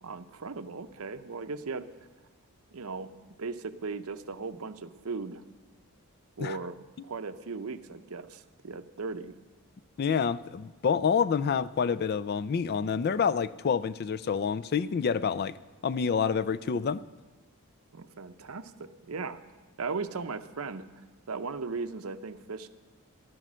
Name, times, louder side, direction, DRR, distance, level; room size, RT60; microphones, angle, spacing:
voice 1, 0.0-1.9 2.7-3.1 3.4-5.4 6.4-6.8 7.0-9.3 17.9-19.4 19.8-20.9 21.3-22.7, right 4 dB, 75° right, 10 dB, 0.7 m, -37 dB
voice 2, 10.0-15.5 15.8-17.0, left 6 dB, 45° left, 15 dB, 0.3 m, -28 dB
13.5 x 12.0 x 6.2 m, 1.3 s
head